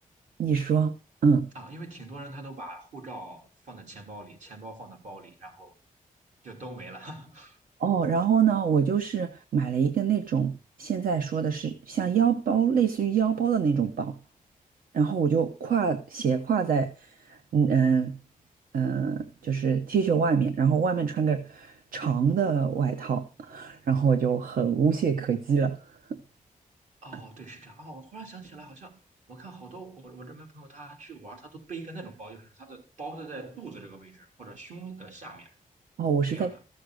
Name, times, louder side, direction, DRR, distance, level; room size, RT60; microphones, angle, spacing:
voice 1, 0.4-0.9 1.2-1.5 7.8-14.1 14.9-18.2 18.7-25.8 26.1-26.2 36.0-36.5, right 6 dB, 75° right, 1.0 m, -25 dB
voice 2, 1.5-5.7 6.4-7.6 27.0-29.0 29.3-35.5 36.3-36.6, right 2 dB, 55° right, 3.3 m, -43 dB
14.0 x 6.6 x 6.3 m
wide cardioid pair, 170°, 14 cm